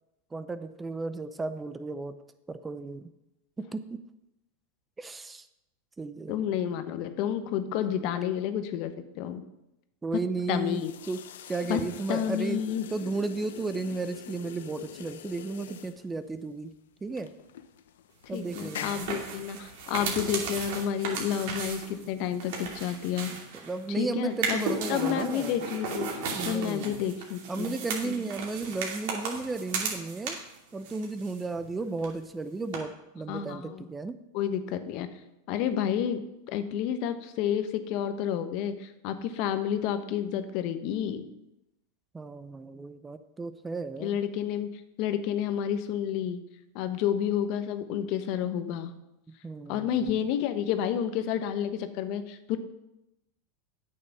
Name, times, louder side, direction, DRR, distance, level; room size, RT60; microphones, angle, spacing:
voice 1, 0.3-2.2 2.5-3.1 3.6-4.0 5.0-5.5 6.0-6.4 10.0-11.2 11.5-12.6 12.9-16.7 17.0-17.3 18.3-19.0 23.3-23.4 23.6-25.6 26.4-27.0 27.5-30.4 30.7-34.2 42.1-44.2 49.4-50.0, right 3 dB, 15° right, 12 dB, 0.5 m, -34 dB
voice 2, 6.3-9.4 10.5-10.9 11.6-11.8 12.1-12.9 18.3-23.3 23.9-27.7 28.0-28.2 33.3-33.9 34.3-35.1 35.5-41.3 44.0-44.7 45.0-46.4 46.7-48.9 49.7-52.6, left 9 dB, 55° left, 10 dB, 0.9 m, -30 dB
sound 1, 10.4-22.8, left 9 dB, 80° left, 0.7 m, -46 dB
sound 2, 18.3-23.8 24.3-30.6 30.8-31.7 32.0-32.1 32.7-32.8, right 4 dB, 65° right, 2.5 m, -35 dB
8.6 x 6.6 x 6.0 m, 0.90 s
hypercardioid pair, 110°, 0 cm